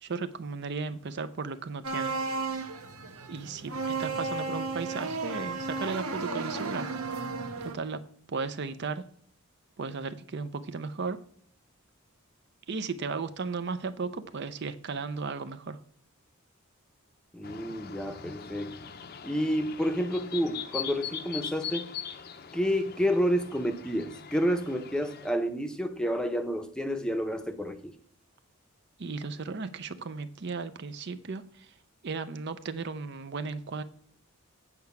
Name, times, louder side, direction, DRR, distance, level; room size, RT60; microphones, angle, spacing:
voice 1, 0.0-2.2 3.3-7.2 7.6-8.0 8.3-9.1 9.8-11.2 12.7-15.8 29.0-31.7 32.0-33.8, right 4 dB, 50° right, 0.5 m, -35 dB
sound 1, 1.8-7.7, right 3 dB, 90° right, 1.1 m, -34 dB
voice 2, 17.3-18.8 19.2-21.9 22.5-27.9, equal, 5° left, 0.7 m, -29 dB
sound 2, 17.4-25.3, left 8 dB, 45° left, 0.6 m, -41 dB
8.5 x 4.7 x 6.9 m
head